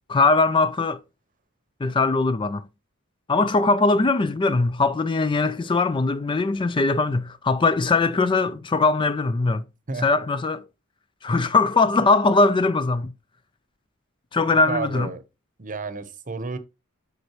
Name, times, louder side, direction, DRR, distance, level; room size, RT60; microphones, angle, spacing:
voice 1, 0.1-1.0 1.8-2.7 3.3-9.7 10.0-10.7 11.2-13.1 14.3-15.1, left 3 dB, 20° left, 0.4 m, -21 dB
voice 2, 14.7-15.2 15.6-16.6, right 4 dB, 35° right, 0.9 m, -31 dB
7.9 x 5.4 x 3.0 m
head